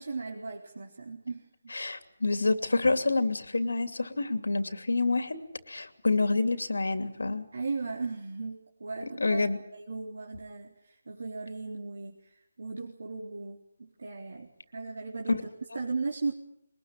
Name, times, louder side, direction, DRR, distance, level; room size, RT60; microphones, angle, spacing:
voice 1, 0.0-1.7 7.5-9.5 9.7-16.3, right 3 dB, 60° right, -1 dB, 3.8 m, -37 dB
voice 2, 1.7-5.4 5.7-7.5 9.2-9.6 15.3-15.4, left 3 dB, 85° left, 9 dB, 2.7 m, -27 dB
23.0 x 20.5 x 9.0 m, 0.75 s
hypercardioid pair, 170°, 0 cm